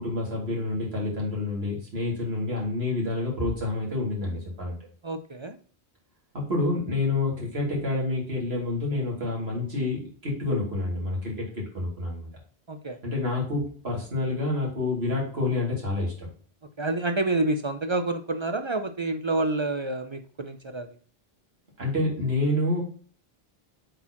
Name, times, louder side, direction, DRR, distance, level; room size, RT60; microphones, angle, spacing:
voice 1, 0.0-4.8 6.3-12.3 13.0-16.3 21.8-22.8, left 2 dB, 75° right, -3 dB, 2.7 m, -28 dB
voice 2, 5.0-5.6 12.7-13.0 16.8-20.9, right 2 dB, 40° right, 9 dB, 0.4 m, -28 dB
7.7 x 4.2 x 2.9 m, 0.43 s
omnidirectional pair, 1.0 m